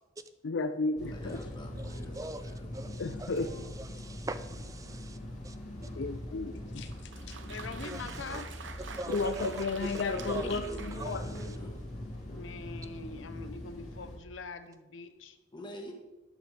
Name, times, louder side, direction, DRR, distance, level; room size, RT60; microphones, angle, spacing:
voice 1, 0.4-1.4 3.0-3.5 6.0-7.4 9.1-11.3, left 3 dB, 65° left, 9 dB, 0.5 m, -33 dB
sound 1, 1.0-14.2, left 1 dB, 40° left, 2.7 m, -42 dB
voice 2, 1.1-2.9 10.1-11.8 15.5-15.9, equal, 25° left, 2 dB, 1.6 m, -46 dB
voice 3, 1.8-5.2 5.4-5.6 7.8-8.4 9.0-10.0 10.3-11.3, right 2 dB, 20° right, 11 dB, 0.4 m, -42 dB
Applause, 6.9-11.7, right 5 dB, 70° right, 0.9 m, -47 dB
voice 4, 7.4-8.5 12.3-15.4, left 4 dB, 90° left, 9 dB, 0.9 m, -43 dB
12.5 x 8.9 x 3.4 m, 1.1 s
head